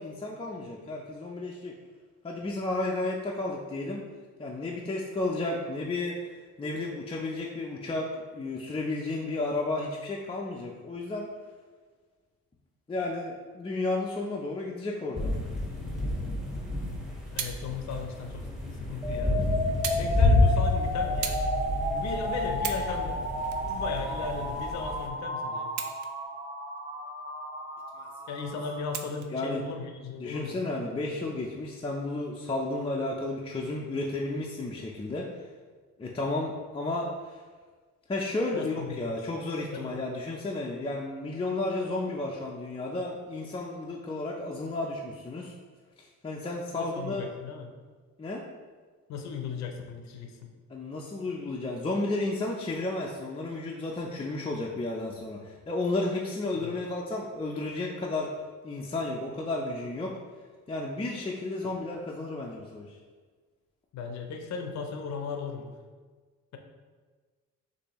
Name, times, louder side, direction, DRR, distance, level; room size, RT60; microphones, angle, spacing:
voice 1, 0.0-1.7 2.2-4.0 4.4-6.3 6.6-11.3 12.9-15.3 28.0-28.1 29.3-29.6 30.2-35.3 36.0-37.4 38.1-45.5 46.0-47.3 48.2-48.4 50.7-58.3 58.6-60.2 60.7-62.9, left 2 dB, 20° left, -3 dB, 0.5 m, -32 dB
sound 1, 15.1-25.1, left 2 dB, ahead, 1.1 m, -29 dB
voice 2, 17.3-18.5 18.7-19.4 20.0-21.4 21.9-23.2 23.6-25.7 28.3-30.6 38.5-39.2 39.7-40.0 46.7-47.7 49.1-50.5 56.5-56.8 63.9-65.7, left 5 dB, 65° left, 4 dB, 0.6 m, -37 dB
Pistols dry firing, 17.3-17.6 18.5-18.6 19.8-20.1 20.4-20.6 21.2-21.5 22.0-22.1 22.5-22.9 23.4-24.5 25.6-26.3 26.8-26.9 28.9-29.3 30.2-30.4, right 8 dB, 70° right, 0.5 m, -36 dB
sound 2, 19.0-29.0, left 1 dB, 25° right, 0.9 m, -33 dB
6.4 x 2.6 x 3.0 m, 1.5 s
cardioid pair, 90°, 30 cm